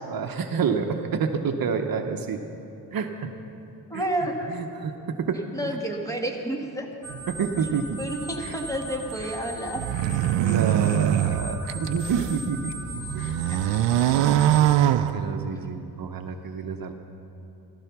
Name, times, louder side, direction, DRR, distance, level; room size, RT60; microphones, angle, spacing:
voice 1, 0.1-2.4 2.9-3.3 3.9-4.0 4.5-5.8 7.1-8.0 8.4-8.6 10.0-13.5 14.9-16.9, right 6 dB, 55° right, 5 dB, 0.9 m, -29 dB
voice 2, 3.9-4.6 5.5-6.9 8.0-9.8 13.5-13.8 15.0-15.1, right 1 dB, 10° left, 1 dB, 1.7 m, -30 dB
sound 1, 7.0-14.7, right 1 dB, 55° left, 4.0 m, -38 dB
sound 2, 9.8-12.4 12.9-15.7, right 11 dB, 90° right, 0.6 m, -23 dB
14.5 x 13.5 x 5.9 m, 3.0 s
cardioid pair, 110°, 42 cm